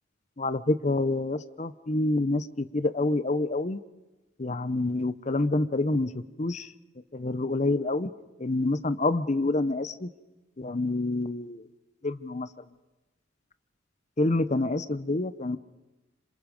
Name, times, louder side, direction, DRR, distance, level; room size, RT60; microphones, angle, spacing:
voice 1, 0.4-3.8 4.4-6.7 7.1-8.1 8.4-10.1 10.6-11.7 12.0-12.5 14.2-15.6, left 2 dB, 35° left, 13 dB, 0.8 m, -27 dB
27.0 x 26.0 x 5.3 m, 1.1 s
head